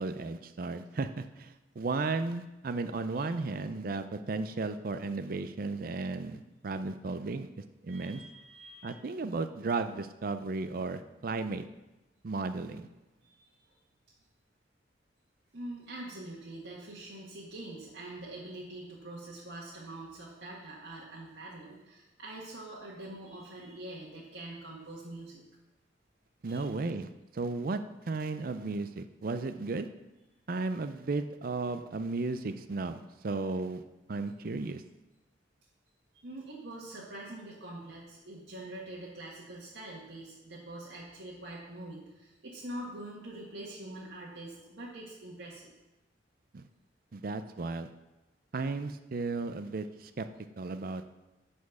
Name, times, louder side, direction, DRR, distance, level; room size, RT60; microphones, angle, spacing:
voice 1, 0.0-7.5 7.8-8.2 8.8-11.6 12.2-12.9 26.4-27.8 28.1-29.9 30.5-33.8 34.1-34.8 46.5-46.6 47.1-47.9 48.5-50.3 50.6-51.0, right 3 dB, 50° right, 10 dB, 0.5 m, -34 dB
voice 2, 7.9-9.1 13.2-13.8 15.5-25.4 26.4-26.7 36.1-45.7, right 1 dB, 80° right, -5 dB, 1.6 m, -44 dB
11.0 x 4.4 x 7.0 m, 1.0 s
head